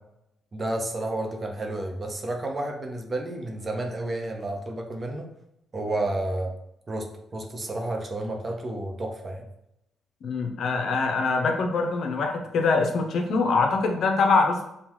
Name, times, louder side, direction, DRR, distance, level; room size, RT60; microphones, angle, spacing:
voice 1, 0.5-5.3 5.7-6.5 6.9-9.5, right 1 dB, 30° right, 3 dB, 0.8 m, -31 dB
voice 2, 10.2-14.7, left 4 dB, 65° left, 3 dB, 0.7 m, -24 dB
5.5 x 2.3 x 3.0 m, 0.82 s
cardioid pair, 90°, 0 cm